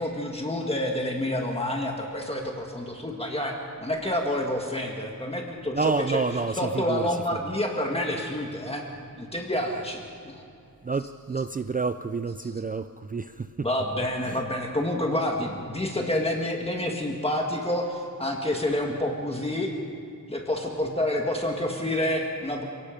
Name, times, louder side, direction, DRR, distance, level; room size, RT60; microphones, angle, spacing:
voice 1, 0.0-8.9 9.2-10.4 12.4-12.5 13.6-19.7 20.3-22.6, left 1 dB, 15° left, 1 dB, 1.7 m, -28 dB
voice 2, 5.7-7.0 10.8-13.7 14.3-14.4, right 4 dB, 25° right, 10 dB, 0.4 m, -29 dB
29.0 x 17.5 x 5.1 m, 2.5 s
wide cardioid pair, 160°, 35 cm